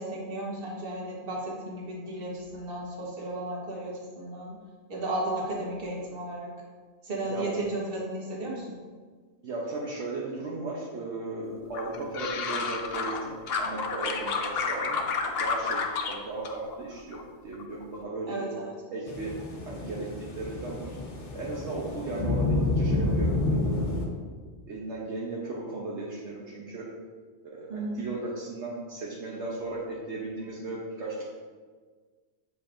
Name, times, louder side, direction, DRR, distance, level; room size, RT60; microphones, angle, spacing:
voice 1, 0.0-4.6 4.9-6.5 7.0-8.8 18.3-18.7 27.7-28.0, right 1 dB, 50° right, -3 dB, 1.5 m, -34 dB
voice 2, 9.4-18.5 18.9-19.4 19.7-21.0 21.3-24.1 24.7-26.9 27.4-31.2, right 2 dB, 75° right, -4 dB, 1.2 m, -36 dB
sound 1, 11.7-13.2 13.5-16.2 16.4-17.2 17.5-18.0, left 5 dB, 60° left, 0.8 m, -30 dB
sound 2, 19.1-24.1, left 2 dB, 85° left, 1.2 m, -29 dB
8.2 x 5.2 x 2.6 m, 1.5 s
omnidirectional pair, 1.2 m